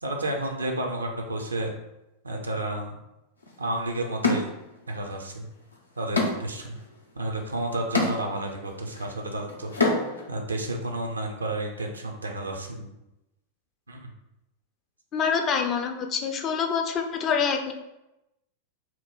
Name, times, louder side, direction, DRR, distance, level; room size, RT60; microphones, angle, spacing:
voice 1, 0.0-1.8 2.2-3.0 3.6-4.5 4.9-5.5 6.0-6.8 7.2-9.7 10.3-12.9 13.9-14.1, right 1 dB, 75° right, 2 dB, 0.5 m, -31 dB
sound 1, 3.4-3.5 4.2-5.1 5.5-10.3, left 3 dB, 80° left, 0.5 m, -29 dB
voice 2, 15.1-17.7, left 6 dB, 30° left, 4 dB, 0.4 m, -26 dB
2.9 x 2.1 x 3.6 m, 0.92 s
figure-of-eight pair, 90°, 0 cm